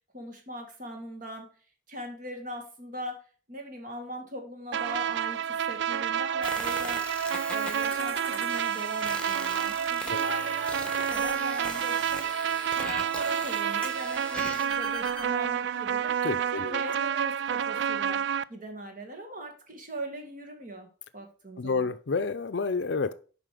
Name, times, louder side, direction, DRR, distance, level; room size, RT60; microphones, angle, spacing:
voice 1, 0.1-1.5 1.9-3.2 3.5-7.0 7.5-12.3 12.7-16.1 16.5-18.2 18.5-20.9 21.1-21.9, right 1 dB, 45° right, 1.9 m, -40 dB
sound 1, 4.7-18.4, right 8 dB, 65° right, 0.3 m, -29 dB
sound 2, 6.4-15.3, left 2 dB, 5° left, 1.3 m, -40 dB
voice 2, 16.2-16.8 21.6-23.1, left 4 dB, 65° left, 0.5 m, -29 dB
7.5 x 5.3 x 5.0 m
head